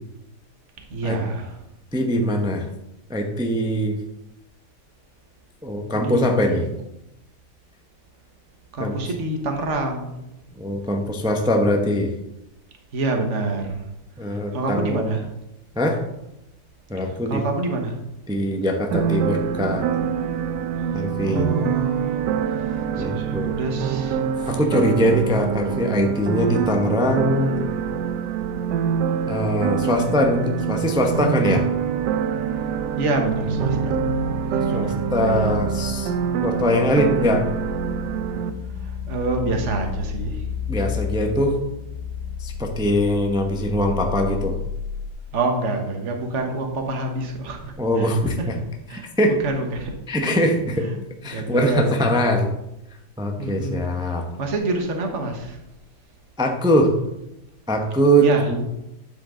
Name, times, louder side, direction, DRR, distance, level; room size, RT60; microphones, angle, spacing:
voice 1, 0.9-1.6 5.9-6.6 8.7-10.1 12.9-13.8 14.3-15.2 17.1-18.0 21.2-22.2 23.0-24.6 33.0-34.0 34.5-34.8 35.3-35.4 38.8-40.4 45.3-48.5 48.9-49.1 49.4-49.9 50.2-50.4 50.8-50.9 51.3-52.2 53.4-55.6 58.2-58.5, right 2 dB, 45° right, 3 dB, 1.6 m, -27 dB
voice 2, 1.9-2.7 3.1-4.0 5.6-6.7 8.8-9.0 10.5-12.1 14.2-15.1 15.7-16.0 16.9-17.4 18.3-19.9 20.9-21.5 22.9-23.5 24.5-27.6 29.3-31.7 34.7-36.1 36.4-37.5 40.7-41.6 42.4-44.5 47.8-48.5 48.9-49.3 50.1-50.9 51.2-52.5 53.2-54.2 56.4-56.9 57.7-58.6, equal, 5° right, 3 dB, 0.5 m, -22 dB
sound 1, 18.9-38.5, right 8 dB, 85° right, 1.2 m, -25 dB
sound 2, 33.4-45.1, left 3 dB, 50° left, 0.8 m, -31 dB
9.6 x 7.5 x 3.8 m, 0.89 s
omnidirectional pair, 1.8 m